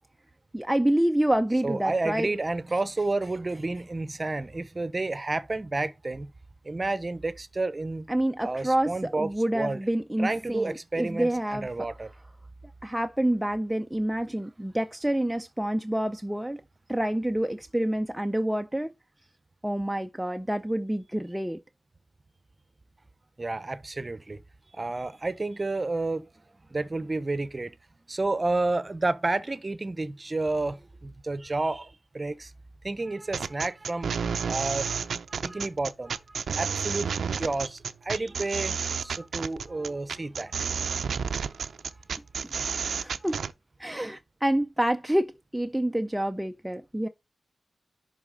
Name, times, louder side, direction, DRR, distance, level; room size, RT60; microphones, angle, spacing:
voice 1, 0.5-2.3 8.1-11.7 12.8-16.6 16.9-18.9 19.6-21.6 42.4-43.4 43.8-47.1, right 1 dB, 5° right, 0.4 m, -27 dB
voice 2, 1.6-6.3 6.6-8.1 8.4-9.8 10.2-12.1 23.4-24.4 24.7-26.3 26.7-27.8 28.1-32.5 32.8-37.1 37.4-41.2 41.5-41.6, right 2 dB, 30° right, 0.7 m, -31 dB
sound 1, 33.3-43.5, right 6 dB, 85° right, 0.5 m, -31 dB
11.0 x 4.1 x 3.9 m
wide cardioid pair, 85°, 0 cm